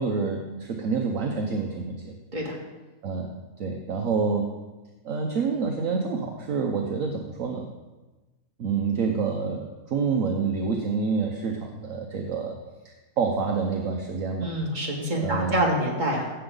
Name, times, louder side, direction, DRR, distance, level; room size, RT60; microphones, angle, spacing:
voice 1, 0.0-2.1 3.0-3.3 3.6-4.5 5.0-7.7 8.6-12.6 12.8-14.5 15.2-15.6, right 5 dB, 60° right, 2 dB, 1.2 m, -27 dB
voice 2, 14.4-16.3, right 1 dB, 30° right, -2 dB, 2.1 m, -26 dB
15.5 x 6.9 x 3.9 m, 1.1 s
omnidirectional pair, 1.6 m